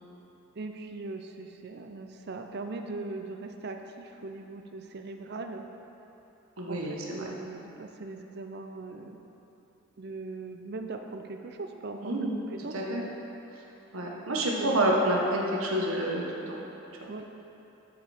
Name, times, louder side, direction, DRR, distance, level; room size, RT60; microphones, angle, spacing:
voice 1, 0.6-5.7 6.7-9.2 10.0-12.1 12.5-13.1 14.6-14.9 17.1-17.4, right 3 dB, 50° right, 5 dB, 0.6 m, -40 dB
voice 2, 6.6-7.3 12.0-12.3 12.7-13.0 13.9-16.6 17.0-17.1, right 1 dB, 85° right, -2 dB, 1.3 m, -28 dB
13.0 x 5.1 x 4.4 m, 3.0 s
head